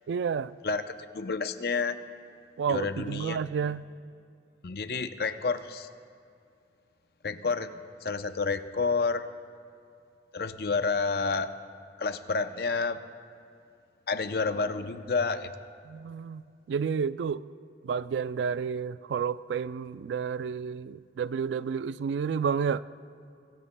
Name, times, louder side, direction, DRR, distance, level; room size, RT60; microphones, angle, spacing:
voice 1, 0.1-0.5 2.6-3.9 15.8-17.4 17.8-22.8, right 6 dB, 90° right, 16 dB, 0.3 m, -30 dB
voice 2, 1.1-2.0 2.7-3.4 4.6-5.9 7.2-9.3 10.3-11.5 12.0-13.0 14.1-15.5, left 4 dB, 60° left, 10 dB, 0.6 m, -29 dB
24.0 x 14.5 x 2.2 m, 2.5 s
head